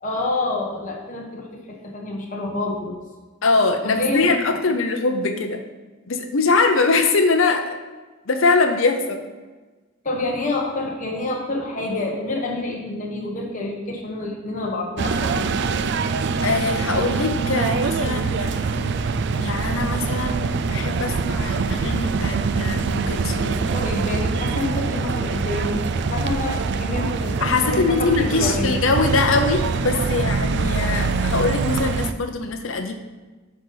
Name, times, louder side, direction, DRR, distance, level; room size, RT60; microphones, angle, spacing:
voice 1, 0.0-2.9 3.8-4.3 10.0-15.6 23.6-28.8, left 2 dB, 40° left, -2 dB, 1.1 m, -27 dB
voice 2, 3.4-5.6 6.1-7.8 8.3-9.2 16.4-19.0 19.3-23.6 27.4-32.9, left 3 dB, 65° left, 5 dB, 0.7 m, -22 dB
sound 1, 15.0-32.1, right 4 dB, 55° right, 0.4 m, -24 dB
8.9 x 4.1 x 5.5 m, 1.3 s
head